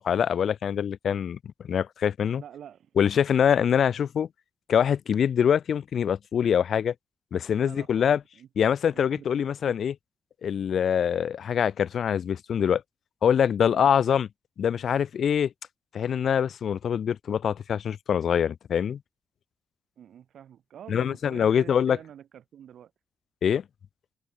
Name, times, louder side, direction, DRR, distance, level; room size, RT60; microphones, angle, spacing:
voice 1, 0.0-1.4 1.6-2.4 3.0-4.3 4.7-6.9 7.3-8.2 8.6-9.9 10.4-12.8 13.2-14.3 14.6-15.5 15.9-19.0 20.9-22.0 23.4-23.6, left 8 dB, 60° left, 1.8 m, -24 dB
voice 2, 2.4-2.9 7.6-9.8 13.7-13.9 20.0-22.9, right 9 dB, 75° right, 7.2 m, -47 dB
open air
wide cardioid pair, 155°, 0 cm